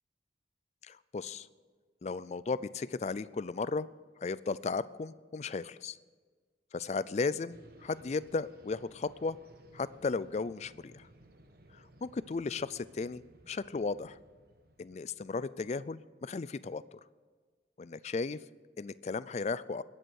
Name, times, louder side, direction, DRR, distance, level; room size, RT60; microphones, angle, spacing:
voice 1, 0.8-1.5 2.0-3.9 4.2-6.0 6.7-9.4 9.7-11.1 12.0-14.2 14.8-17.0 17.8-18.4 18.8-19.8, left 4 dB, 35° left, 17 dB, 0.3 m, -35 dB
sound 1, 7.5-15.8, right 1 dB, 55° right, 1.2 m, -59 dB
20.5 x 7.8 x 6.4 m, 1.5 s
head